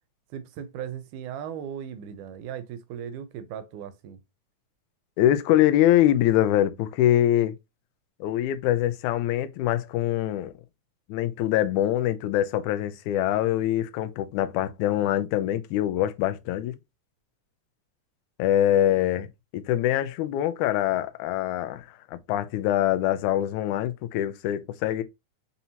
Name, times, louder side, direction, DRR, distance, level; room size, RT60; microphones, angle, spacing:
voice 1, 0.3-4.2, right 8 dB, 90° right, 2.1 m, -37 dB
voice 2, 5.2-7.5 8.2-10.5 11.1-16.8 18.4-19.3 19.5-21.9 22.3-25.0, left 12 dB, 85° left, 2.0 m, -24 dB
5.4 x 2.7 x 2.8 m
omnidirectional pair, 3.5 m